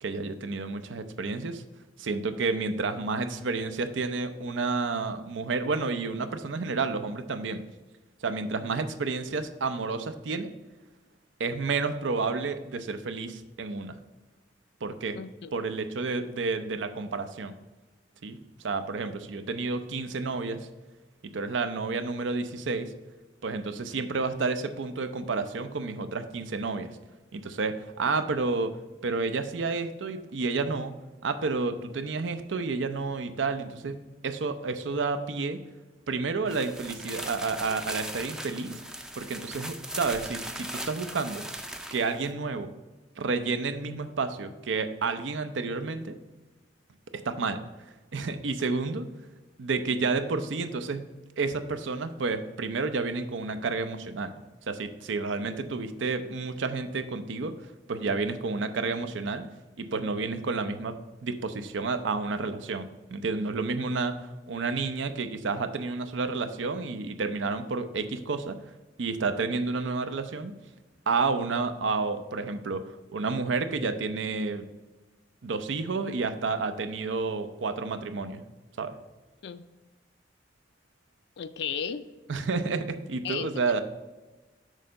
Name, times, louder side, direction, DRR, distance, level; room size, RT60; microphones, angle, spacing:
voice 1, 0.0-1.6 2.0-7.6 8.2-10.5 11.4-14.0 14.8-15.2 15.5-17.5 18.2-20.7 21.3-22.9 23.4-26.9 27.3-28.8 29.0-35.6 36.1-38.7 39.2-41.4 41.9-42.7 43.2-46.2 47.2-47.6 48.1-49.1 49.6-51.0 51.4-54.3 54.7-57.5 57.9-59.5 59.8-68.6 69.0-70.5 71.1-74.6 75.4-78.4 78.8-79.0 82.3-83.8, right 4 dB, 90° right, 9 dB, 0.6 m, -30 dB
voice 2, 15.1-15.5 79.4-79.6 81.4-82.1 83.2-83.7, left 8 dB, 65° left, 13 dB, 0.4 m, -35 dB
sound 1, 36.5-42.3, right 1 dB, 5° right, 0.4 m, -39 dB
6.5 x 3.8 x 5.2 m, 1.2 s
head